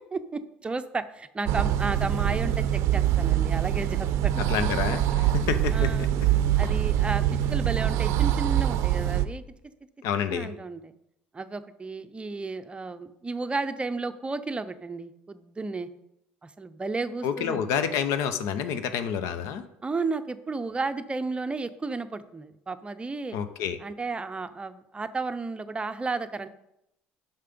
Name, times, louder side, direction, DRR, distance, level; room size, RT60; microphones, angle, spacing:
voice 1, 0.1-4.3 5.7-6.1 6.6-7.2 7.5-9.4 10.3-10.9 11.3-15.9 16.4-17.7 19.8-23.4 23.8-26.5, right 3 dB, 20° right, 11 dB, 0.6 m, -33 dB
sound 1, 1.5-9.2, right 11 dB, 65° right, 0.5 m, -24 dB
voice 2, 4.5-6.3 10.0-10.5 17.2-19.6 23.3-23.8, left 8 dB, 70° left, 11 dB, 0.7 m, -29 dB
6.6 x 5.8 x 5.2 m, 0.82 s
hypercardioid pair, 65°, 5 cm